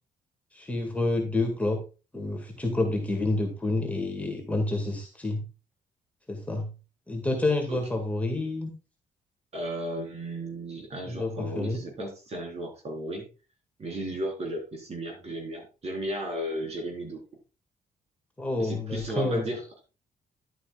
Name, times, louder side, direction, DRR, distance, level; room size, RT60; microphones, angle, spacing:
voice 1, 0.5-1.8 2.1-5.4 6.3-6.7 7.1-8.7 11.1-11.8 18.4-19.4, left 2 dB, 10° left, 2 dB, 1.9 m, -28 dB
voice 2, 9.5-13.3 13.8-17.2 18.6-19.6, right 1 dB, 45° right, 2 dB, 4.0 m, -34 dB
11.5 x 8.7 x 2.4 m, 0.31 s
cardioid pair, 135°, 15 cm